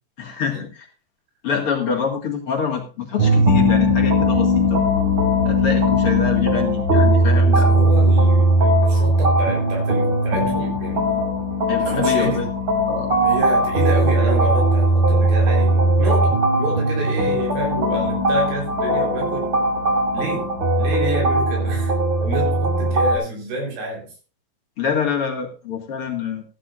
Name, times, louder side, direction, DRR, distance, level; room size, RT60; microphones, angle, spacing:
voice 1, 0.2-0.9 1.4-4.8 5.4-7.7 11.7-12.5 12.9-13.1 24.8-26.4, left 6 dB, 45° left, 0 dB, 2.5 m, -26 dB
sound 1, 3.2-23.2, equal, 35° right, 4.1 m, -18 dB
voice 2, 7.5-11.0 11.8-12.5 13.2-19.5 20.1-20.5 20.8-24.1, right 2 dB, 85° right, 0 dB, 5.9 m, -28 dB
15.5 x 12.0 x 2.5 m, 0.36 s
omnidirectional pair, 4.1 m